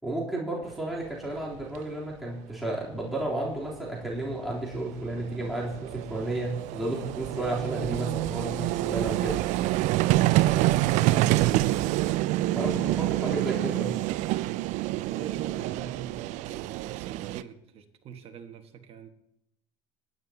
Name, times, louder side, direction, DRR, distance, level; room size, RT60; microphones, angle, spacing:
voice 1, 0.0-9.4 12.5-12.7 13.2-14.0, right 1 dB, ahead, -5 dB, 3.5 m, -32 dB
Vehicle, 1.3-1.4 1.6-1.8 3.8-3.9 4.0-17.4, right 16 dB, 60° right, 0.4 m, -27 dB
voice 2, 11.2-12.0 12.7-13.3 15.0-19.1, right 8 dB, 45° right, 6 dB, 1.6 m, -42 dB
21.5 x 9.6 x 2.9 m, 0.81 s
supercardioid pair, 95°, 14 cm